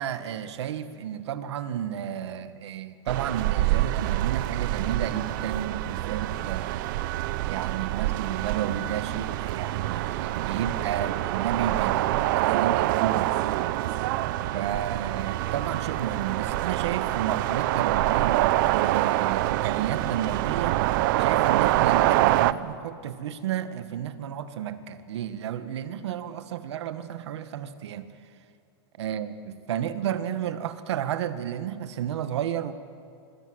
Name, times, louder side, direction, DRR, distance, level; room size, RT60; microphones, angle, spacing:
voice 1, 0.0-6.8 7.4-13.3 14.5-20.8 21.2-28.1 29.0-32.7, right 10 dB, 80° right, 10 dB, 1.9 m, -32 dB
sound 1, 3.1-22.5, right 15 dB, 50° right, 0.8 m, -26 dB
26.0 x 25.5 x 8.2 m, 2.4 s
supercardioid pair, 160°, 14 cm